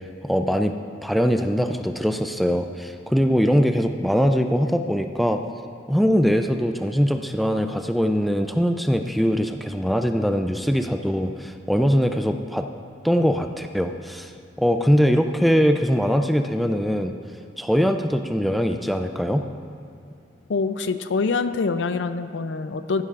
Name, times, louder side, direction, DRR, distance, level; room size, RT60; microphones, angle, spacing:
voice 1, 0.2-0.7 1.0-5.4 5.9-12.7 13.0-14.3 14.6-17.1 17.6-19.4, equal, ahead, 6 dB, 0.3 m, -22 dB
voice 2, 20.5-23.0, left 4 dB, 85° left, 11 dB, 0.5 m, -25 dB
15.0 x 11.5 x 2.5 m, 2.6 s
head